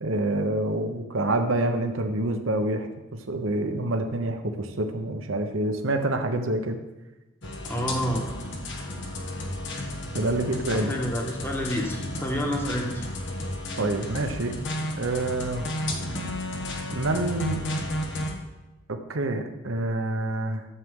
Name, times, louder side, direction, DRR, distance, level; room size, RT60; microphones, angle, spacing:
voice 1, 0.0-6.8 10.1-10.9 13.8-14.6 15.0-15.7 16.9-17.7 18.9-20.7, right 2 dB, 75° right, 6 dB, 1.0 m, -27 dB
sound 1, 7.4-18.3, left 1 dB, 65° left, 1.3 m, -33 dB
voice 2, 7.6-8.2 10.7-13.1, equal, 10° left, 1 dB, 1.3 m, -29 dB
12.5 x 7.5 x 3.7 m, 1.1 s
head